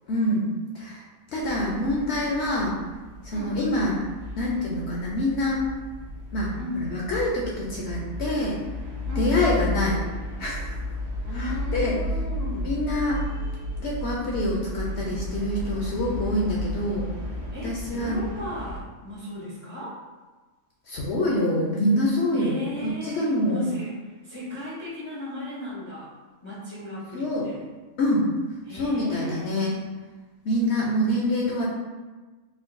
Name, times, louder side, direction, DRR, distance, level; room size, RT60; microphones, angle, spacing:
voice 1, 0.1-0.5 0.7-1.0 1.3-2.7 3.2-3.9 4.4-5.7 6.3-6.5 6.9-8.6 9.2-10.0 10.4-10.7 11.3-12.0 12.6-13.2 13.8-17.1 17.6-18.2 20.9-22.7 23.0-23.6 27.1-27.5 28.0-28.3 28.7-29.7 30.4-31.7, left 1 dB, 65° left, -4 dB, 0.7 m, -25 dB
sound 1, 1.4-18.8, left 1 dB, 70° right, 1.2 m, -33 dB
voice 2, 3.3-3.7 6.6-6.9 9.1-9.6 11.2-12.7 17.5-20.0 22.3-26.2 26.4-27.6 28.7-29.7, left 1 dB, 35° left, -9 dB, 0.4 m, -36 dB
4.4 x 2.2 x 2.5 m, 1.3 s
omnidirectional pair, 1.5 m